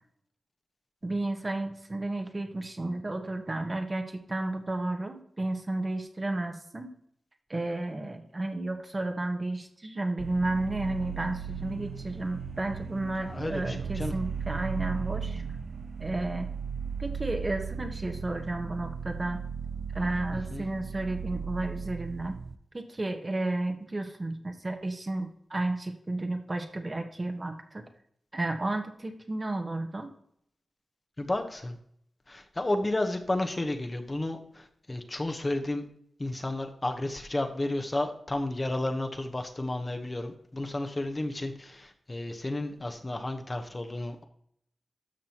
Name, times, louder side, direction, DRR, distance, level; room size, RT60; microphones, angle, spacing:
voice 1, 1.0-6.9 7.5-15.4 16.0-16.5 17.0-19.4 19.9-22.4 22.7-27.9 28.3-30.1, right 2 dB, 35° right, 5 dB, 1.3 m, -32 dB
sound 1, 10.2-22.5, right 6 dB, 70° right, 0.5 m, -36 dB
voice 2, 13.2-14.1 20.3-20.7 31.2-31.8 32.3-35.9 36.2-44.3, left 1 dB, 30° left, 5 dB, 1.1 m, -32 dB
12.5 x 6.2 x 3.0 m, 0.69 s
cardioid pair, 60°, 0 cm